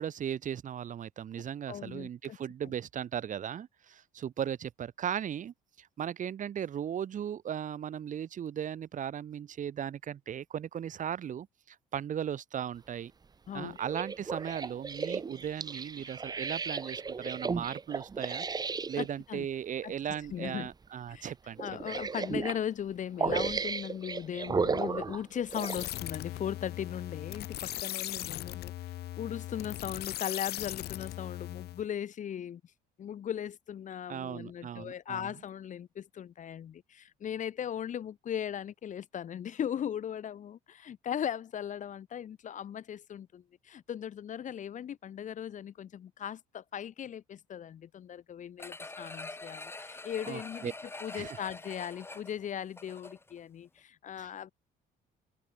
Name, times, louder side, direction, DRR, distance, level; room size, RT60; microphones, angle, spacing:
voice 1, 0.0-13.1 13.5-21.6 34.1-35.3 50.3-50.7 51.1-51.4 54.2-54.3, right 9 dB, 50° right, 2.7 m, -37 dB
voice 2, 1.7-2.4 13.5-13.8 19.0-19.5 19.8-19.9 20.3-20.7 21.1-21.3 21.6-28.7 29.2-32.6 33.0-50.7 51.0-54.5, left 9 dB, 45° left, 1.5 m, -38 dB
sound 1, 13.8-19.1 20.1-20.3 20.7-20.8 21.6-22.6 23.2-25.9 26.5-26.6, right 5 dB, 25° right, 1.0 m, -34 dB
sound 2, 25.5-31.8, left 14 dB, 70° left, 3.7 m, -39 dB
sound 3, 48.6-53.4 53.8-53.9, left 2 dB, 15° left, 2.0 m, -45 dB
open air
cardioid pair, 110°, 17 cm